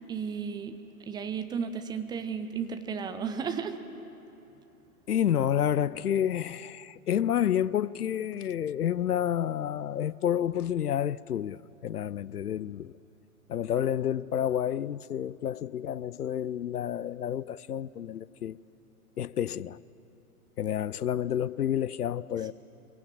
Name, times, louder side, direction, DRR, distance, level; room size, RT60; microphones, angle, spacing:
voice 1, 0.0-3.8, right 6 dB, 10° right, 0.6 m, -34 dB
voice 2, 5.1-12.9 13.5-18.6 19.2-19.8 20.6-22.5, left 10 dB, 80° left, 0.7 m, -29 dB
23.0 x 18.0 x 9.2 m
figure-of-eight pair, 115°, 45 cm